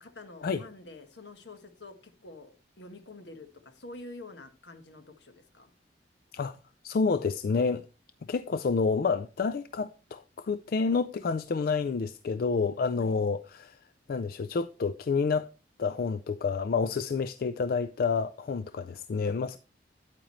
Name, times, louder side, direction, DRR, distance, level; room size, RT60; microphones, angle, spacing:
voice 1, 0.0-5.7 13.0-13.2, left 2 dB, 80° left, 1.3 m, -47 dB
voice 2, 6.8-7.8 8.3-13.8 14.1-15.5 15.8-19.6, left 5 dB, 55° left, 0.4 m, -29 dB
9.1 x 8.7 x 3.1 m
head